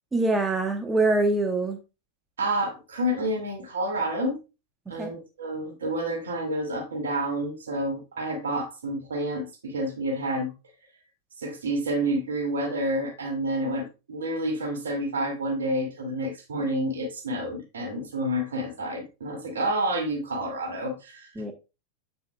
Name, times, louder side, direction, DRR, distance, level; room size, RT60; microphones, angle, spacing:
voice 1, 0.1-1.8 4.9-5.1 21.4-21.5, right 2 dB, 10° right, 1.0 m, -24 dB
voice 2, 2.4-4.4 4.9-10.5 11.4-21.3, right 1 dB, 65° right, 2.3 m, -29 dB
7.6 x 7.0 x 2.2 m
figure-of-eight pair, 90°, 0 cm